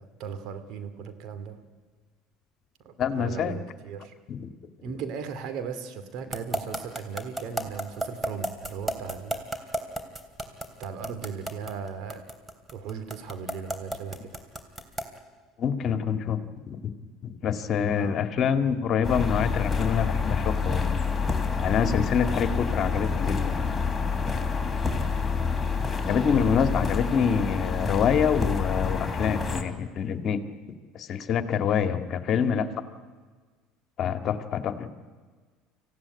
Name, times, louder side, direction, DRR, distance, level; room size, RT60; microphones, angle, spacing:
voice 1, 0.0-1.6 2.8-4.1 4.8-9.5 10.8-12.2 12.7-14.3 17.9-18.2 24.8-25.0, right 6 dB, 60° right, 9 dB, 2.6 m, -37 dB
voice 2, 3.0-3.6 4.3-4.5 15.6-16.4 16.7-16.9 17.2-20.9 21.2-21.3 21.6-23.6 26.1-30.4 30.9-32.7 34.0-34.9, left 7 dB, 50° left, 8 dB, 1.9 m, -26 dB
sound 1, 6.3-15.2, right 1 dB, 15° right, 3.2 m, -31 dB
sound 2, 19.0-29.6, left 5 dB, 15° left, 3.3 m, -28 dB
25.0 x 16.0 x 9.9 m, 1.5 s
hypercardioid pair, 85°, 0 cm